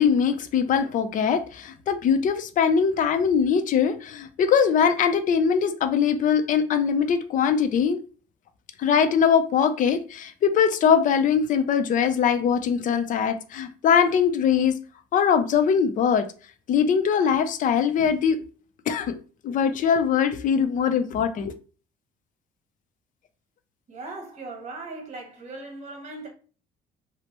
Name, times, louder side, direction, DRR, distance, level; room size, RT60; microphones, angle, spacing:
voice 1, 0.0-8.0 8.8-14.8 15.1-16.3 16.7-18.4 18.9-19.2 19.4-21.5, left 7 dB, 50° left, 0.5 m, -22 dB
voice 2, 23.9-26.3, right 3 dB, 45° right, 1.0 m, -38 dB
2.8 x 2.0 x 3.0 m
cardioid pair, 110°, 17 cm